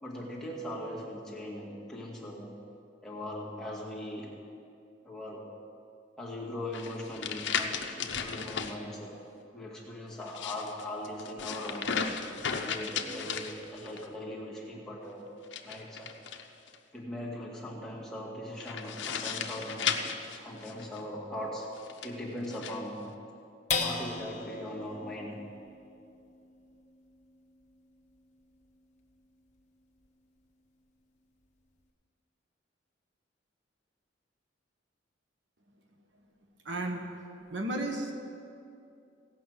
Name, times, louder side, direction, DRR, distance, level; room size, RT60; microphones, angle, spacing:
voice 1, 0.0-2.6 3.0-4.5 5.0-5.5 6.2-9.1 9.5-12.0 12.4-15.2 15.6-16.1 16.9-21.7 22.0-23.2 23.8-25.5, left 1 dB, 5° left, -5 dB, 1.9 m, -40 dB
sound 1, 6.7-8.7 10.2-14.1 15.4-16.8 18.6-21.0 21.8-22.8, left 6 dB, 75° left, 0.8 m, -35 dB
sound 2, 23.7-30.4 30.9-31.0 31.4-31.9, left 4 dB, 40° left, 1.1 m, -40 dB
voice 2, 36.6-37.0 37.4-38.1, right 1 dB, 70° right, 3 dB, 1.3 m, -33 dB
16.5 x 5.7 x 7.8 m, 2.6 s
head